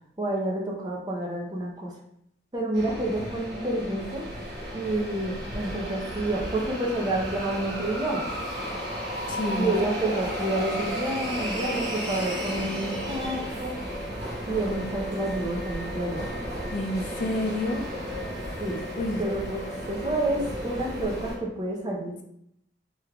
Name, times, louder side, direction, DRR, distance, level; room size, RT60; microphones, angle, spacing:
voice 1, 0.2-1.9 2.5-4.2 4.7-8.2 9.6-13.7 14.5-16.2 18.6-18.8 19.2-19.6 19.9-22.2, right 1 dB, 25° right, -2 dB, 0.6 m, -29 dB
sound 1, 2.7-21.4, equal, 85° right, 1.1 m, -33 dB
voice 2, 9.3-9.7 16.7-17.9 18.9-19.2, left 1 dB, 45° left, 3 dB, 0.3 m, -28 dB
3.5 x 3.3 x 2.2 m, 0.76 s
head